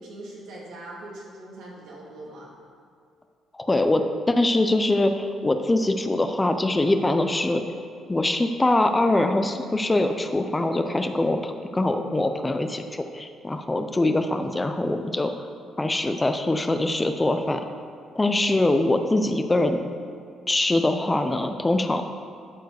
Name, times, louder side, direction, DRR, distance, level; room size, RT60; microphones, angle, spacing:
voice 1, 0.0-2.5, right 1 dB, 80° right, -5 dB, 2.4 m, -41 dB
voice 2, 3.5-7.6 8.1-15.3 15.8-17.6 18.1-19.8 20.5-22.0, left 2 dB, 20° left, 7 dB, 0.6 m, -23 dB
12.5 x 4.6 x 4.9 m, 2.2 s
supercardioid pair, 70°, 0 cm